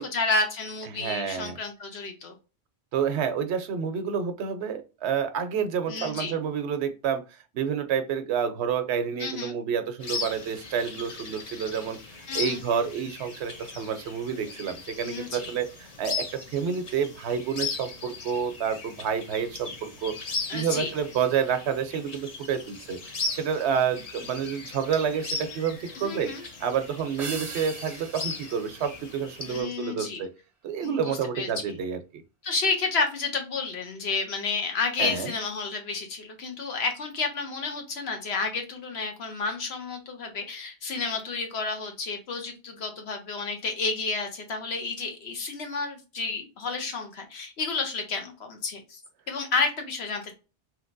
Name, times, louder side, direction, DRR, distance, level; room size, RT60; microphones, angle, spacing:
voice 1, 0.1-2.3 5.9-6.4 9.2-9.5 12.3-12.6 15.0-15.5 20.5-20.9 25.9-26.4 29.5-30.2 30.8-31.8 32.4-49.0 49.3-50.3, left 4 dB, 70° left, 4 dB, 1.1 m, -31 dB
voice 2, 0.9-1.6 2.9-12.0 12.3-15.7 16.0-20.1 20.5-23.0 23.3-26.3 26.6-30.3 30.6-32.2 35.0-35.3, right 7 dB, 75° right, 9 dB, 0.9 m, -29 dB
sound 1, 10.0-29.6, left 3 dB, 40° left, 0.6 m, -38 dB
sound 2, 27.2-29.8, right 4 dB, 35° right, 0.6 m, -41 dB
3.2 x 2.8 x 2.5 m, 0.31 s
omnidirectional pair, 1.1 m